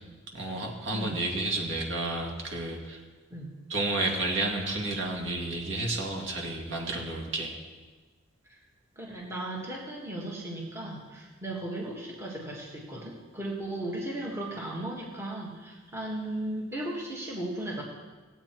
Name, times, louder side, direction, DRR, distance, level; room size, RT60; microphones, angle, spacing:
voice 1, 0.3-3.0 3.7-7.5, right 2 dB, 60° right, 0 dB, 2.2 m, -31 dB
voice 2, 8.9-17.8, right 1 dB, 15° right, -2 dB, 1.6 m, -36 dB
17.5 x 8.3 x 4.5 m, 1.3 s
head